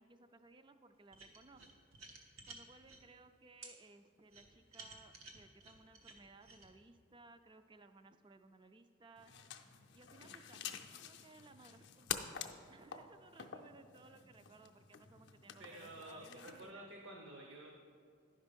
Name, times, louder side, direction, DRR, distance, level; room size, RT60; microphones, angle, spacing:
voice 1, 0.0-1.7 2.4-9.3 9.9-16.9, right 3 dB, 25° right, 9 dB, 0.3 m, -61 dB
sound 1, 1.1-3.0 3.6-3.7 4.3-6.7, right 3 dB, 90° right, 1.1 m, -54 dB
sound 2, 9.2-16.7, left 8 dB, 55° left, 0.5 m, -48 dB
voice 2, 15.6-17.7, right 1 dB, 65° right, 0 dB, 0.8 m, -51 dB
11.0 x 5.4 x 5.2 m, 2.3 s
head